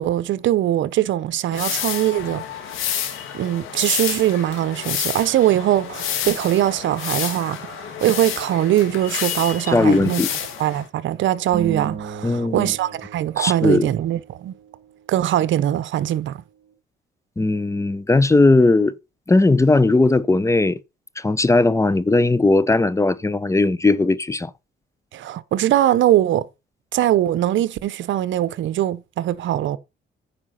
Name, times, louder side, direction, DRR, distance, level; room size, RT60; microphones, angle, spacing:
voice 1, 0.0-2.4 2.7-2.8 3.3-10.2 10.6-14.5 15.1-16.4 25.1-26.5 26.9-29.8, right 12 dB, 70° right, 0.8 m, -21 dB
sound 1, 1.5-10.9, left 9 dB, 90° left, 2.1 m, -29 dB
voice 2, 9.7-10.3 12.2-12.7 13.4-13.9 17.4-19.0 19.3-20.8 21.2-24.5, left 2 dB, 15° left, 0.7 m, -18 dB
sound 2, 11.5-14.1, right 6 dB, 45° right, 4.5 m, -34 dB
9.8 x 5.0 x 5.6 m
cardioid pair, 90°, 20 cm